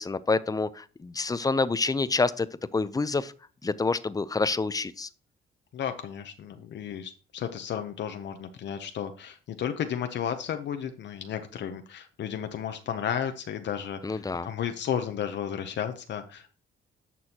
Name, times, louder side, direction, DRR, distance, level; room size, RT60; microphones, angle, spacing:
voice 1, 0.0-2.5 2.7-3.3 3.6-5.1 14.0-14.5, left 3 dB, 20° left, 16 dB, 0.5 m, -27 dB
voice 2, 5.7-16.5, left 8 dB, 65° left, 7 dB, 0.8 m, -33 dB
11.0 x 6.2 x 2.9 m, 0.39 s
cardioid pair, 90°, 20 cm